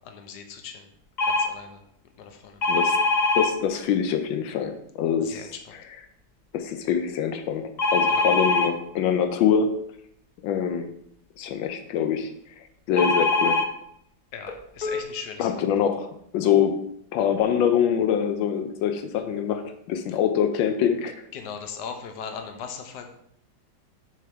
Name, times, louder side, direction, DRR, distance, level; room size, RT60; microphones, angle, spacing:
voice 1, 0.1-0.8 1.3-1.8 2.2-2.6 5.3-5.5 14.3-15.4 21.3-23.1, left 6 dB, 65° left, 5 dB, 1.4 m, -38 dB
sound 1, 1.2-1.5 2.6-3.5 7.8-8.7 13.0-13.7 14.5-14.6 14.8-15.0, left 3 dB, 50° left, 0.5 m, -22 dB
voice 2, 3.3-6.1 6.5-9.8 10.4-10.9 11.4-12.3 12.6-13.6 15.4-16.8 17.1-21.1, left 8 dB, 85° left, 8 dB, 1.4 m, -25 dB
6.7 x 6.5 x 3.4 m, 0.71 s
omnidirectional pair, 2.0 m